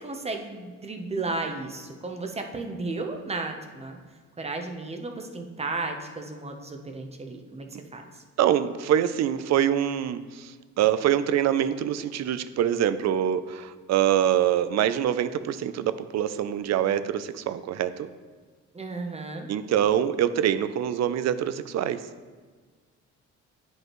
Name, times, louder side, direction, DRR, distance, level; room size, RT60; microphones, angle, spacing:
voice 1, 0.0-4.0 4.4-7.7 7.9-8.2 18.7-19.5, right 3 dB, 20° right, 4 dB, 0.8 m, -34 dB
voice 2, 8.4-18.1 19.5-22.0, right 10 dB, 60° right, 13 dB, 0.4 m, -25 dB
9.4 x 5.3 x 3.0 m, 1.5 s
cardioid pair, 90°, 30 cm